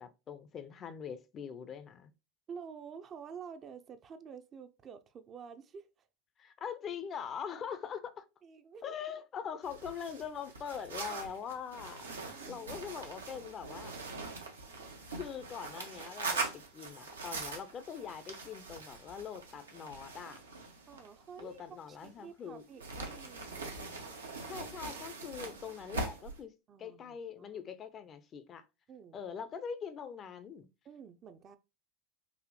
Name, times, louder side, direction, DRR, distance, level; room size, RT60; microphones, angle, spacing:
voice 1, 0.0-2.1 6.4-8.2 8.8-12.1 12.5-13.9 15.1-20.4 21.4-22.6 24.5-26.5 26.8-28.7 29.1-30.7, left 7 dB, 35° left, 0.5 m, -43 dB
voice 2, 2.5-6.1 8.4-9.0 12.2-13.0 20.9-23.9 26.7-27.6 28.9-29.2 30.8-31.6, right 6 dB, 35° right, 0.5 m, -50 dB
sound 1, 9.6-22.3 22.8-26.4, right 3 dB, 85° right, 0.8 m, -42 dB
4.1 x 2.6 x 3.0 m
figure-of-eight pair, 80°, 0 cm